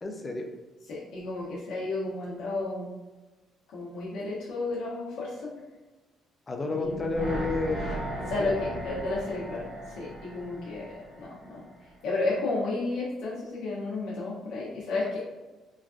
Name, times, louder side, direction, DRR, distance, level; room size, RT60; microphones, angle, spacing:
voice 1, 0.0-0.5 6.5-8.5, left 3 dB, 20° left, 3 dB, 0.3 m, -31 dB
voice 2, 0.9-2.9 3.7-5.5 6.7-6.9 8.3-11.6 12.0-15.2, left 3 dB, 70° left, -7 dB, 0.7 m, -32 dB
sound 1, 6.8-12.0 12.3-12.4, right 1 dB, 85° right, 1.3 m, -37 dB
3.1 x 2.5 x 2.3 m, 1.2 s
cardioid pair, 155°, 0 cm